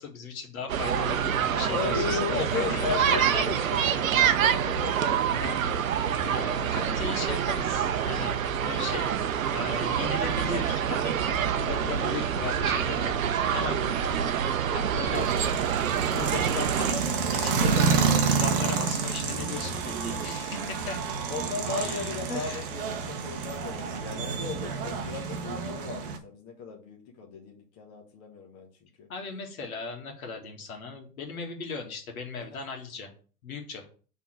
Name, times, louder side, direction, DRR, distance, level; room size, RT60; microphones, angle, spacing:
voice 1, 0.0-3.8 5.2-5.6 6.3-9.2 9.5-14.2 14.7-15.3 16.0-17.9 18.3-21.0 21.7-22.7 29.1-33.1 33.4-33.9, left 4 dB, 60° left, 2 dB, 2.1 m, -37 dB
sound 1, 0.7-16.9, right 8 dB, 60° right, 0.8 m, -26 dB
voice 2, 1.5-6.3 6.6-7.3 12.0-12.1 13.4-13.9 21.3-28.7 29.0-29.1 32.4-32.6, left 5 dB, 25° left, 0 dB, 1.2 m, -36 dB
sound 2, 15.1-26.2, right 5 dB, 35° right, 0.9 m, -29 dB
5.8 x 3.8 x 5.9 m, 0.40 s
hypercardioid pair, 130°, 48 cm